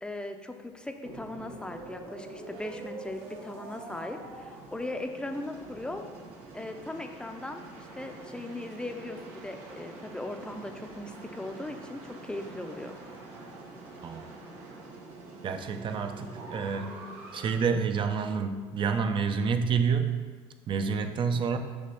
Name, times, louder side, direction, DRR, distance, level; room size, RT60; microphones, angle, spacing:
voice 1, 0.0-6.0 6.5-13.0, left 1 dB, 5° left, 5 dB, 0.6 m, -38 dB
sound 1, 1.0-17.6, right 2 dB, 85° right, 1.3 m, -45 dB
voice 2, 15.4-17.0 17.3-20.2 20.7-21.6, right 5 dB, 40° right, 7 dB, 0.6 m, -28 dB
6.5 x 3.0 x 5.8 m, 1.4 s
supercardioid pair, 100°, 13 cm